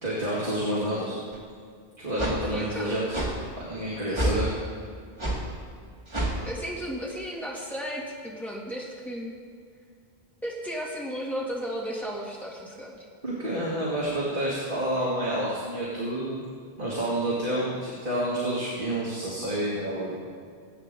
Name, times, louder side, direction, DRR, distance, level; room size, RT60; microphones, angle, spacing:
voice 1, 0.0-1.2 2.0-3.2 3.6-4.5 13.2-16.4 16.8-20.2, right 1 dB, 55° right, -7 dB, 2.5 m, -29 dB
sound 1, 1.3-1.4 2.2-2.4 3.1-3.3 4.1-4.4 5.2-5.4 6.1-6.4, right 1 dB, 25° right, 2.2 m, -27 dB
voice 2, 2.5-3.1 6.5-9.4 10.4-13.1, equal, ahead, -5 dB, 2.4 m, -34 dB
21.5 x 8.9 x 3.8 m, 2.2 s
omnidirectional pair, 1.1 m